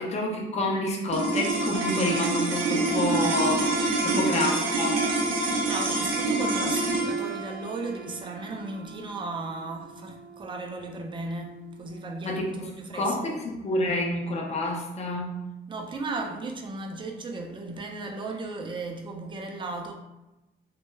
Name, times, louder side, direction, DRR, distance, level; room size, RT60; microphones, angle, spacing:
voice 1, 0.0-4.9 12.2-15.5, left 1 dB, 35° left, 0 dB, 0.5 m, -29 dB
sound 1, 1.1-11.6, right 2 dB, 75° right, 0.6 m, -27 dB
voice 2, 4.1-4.6 5.4-13.4 15.7-19.9, right 3 dB, 25° right, 2 dB, 0.4 m, -36 dB
2.1 x 2.1 x 3.1 m, 0.99 s
cardioid pair, 90°, 20 cm